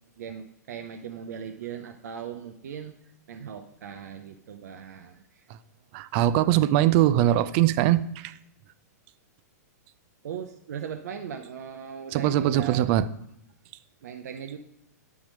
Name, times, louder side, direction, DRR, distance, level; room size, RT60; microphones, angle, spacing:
voice 1, 0.2-5.5 10.2-12.9 14.0-14.6, right 8 dB, 70° right, 0.7 m, -39 dB
voice 2, 5.9-8.3 12.1-13.1, right 13 dB, 40° right, 0.4 m, -22 dB
10.5 x 3.6 x 6.4 m
hypercardioid pair, 135°, 9 cm